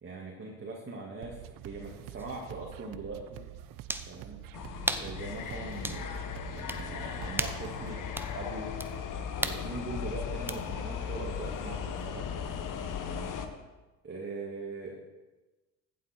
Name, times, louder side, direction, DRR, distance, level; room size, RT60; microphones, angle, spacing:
voice 1, 0.0-3.4 4.0-4.4 5.0-8.0 8.3-8.7 9.4-12.4 13.0-13.4 14.0-15.0, right 3 dB, 30° right, -2 dB, 2.4 m, -41 dB
sound 1, 1.2-8.1, right 13 dB, 60° right, 0.7 m, -47 dB
sound 2, 2.2-2.3 3.9-4.1 4.9-5.1 5.8-6.0 6.7-6.8 7.3-7.7 8.1-8.3 8.8-8.9 9.4-9.6 10.5-10.6, right 1 dB, 5° right, 0.9 m, -33 dB
sound 3, 4.5-13.5, left 7 dB, 55° left, 1.4 m, -37 dB
15.0 x 7.8 x 4.6 m, 1.2 s
hypercardioid pair, 70°, 39 cm